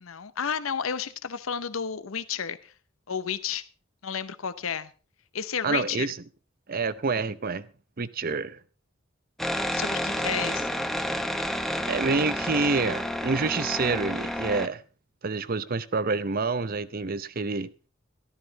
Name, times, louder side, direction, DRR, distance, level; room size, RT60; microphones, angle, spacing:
voice 1, 0.0-2.7 3.1-3.7 4.0-4.9 5.3-6.1 8.3-8.4 9.7-10.7, left 7 dB, 85° left, 0.8 m, -32 dB
voice 2, 5.6-6.1 6.7-7.7 8.0-8.6 11.9-14.8 15.2-17.7, right 4 dB, 45° right, 0.7 m, -27 dB
sound 1, 9.4-14.7, equal, ahead, 0.8 m, -30 dB
13.5 x 12.0 x 4.0 m
head